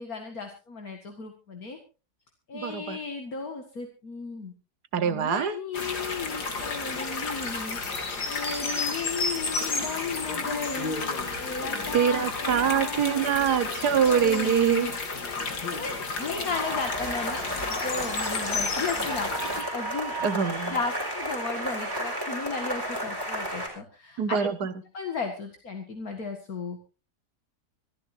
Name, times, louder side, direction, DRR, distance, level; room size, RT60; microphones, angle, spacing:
voice 1, 0.0-1.8 2.5-4.5 5.0-7.8 8.2-11.0 11.4-13.7 14.1-14.9 15.3-19.3 19.6-20.1 20.7-24.5 24.9-26.8, left 4 dB, 65° left, 4 dB, 2.4 m, -35 dB
voice 2, 2.5-3.0 4.9-5.6 11.9-14.9 20.2-20.7 24.2-24.7, right 8 dB, 80° right, 12 dB, 1.8 m, -24 dB
sound 1, 5.7-19.6, left 3 dB, 85° left, 2.9 m, -32 dB
sound 2, 16.5-23.7, right 1 dB, 15° right, 5.0 m, -32 dB
26.0 x 13.5 x 2.7 m, 0.32 s
omnidirectional pair, 1.7 m